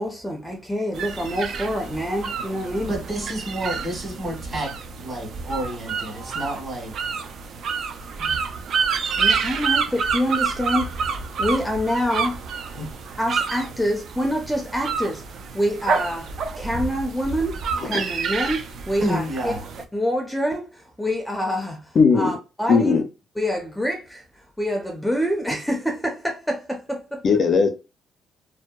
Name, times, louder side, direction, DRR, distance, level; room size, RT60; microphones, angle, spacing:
voice 1, 0.0-3.0 9.2-12.4 13.2-19.5 19.9-23.0 23.4-27.2, equal, 5° left, 0.5 m, -26 dB
sound 1, 0.9-19.8, right 5 dB, 65° right, 0.4 m, -28 dB
voice 2, 2.9-6.9 8.2-8.3 12.7-12.9 19.0-19.6, right 1 dB, 40° right, 1.3 m, -29 dB
voice 3, 22.0-22.4 22.7-23.0 27.2-27.7, left 5 dB, 50° left, 0.5 m, -17 dB
2.7 x 2.1 x 2.3 m
cardioid pair, 90°, 0 cm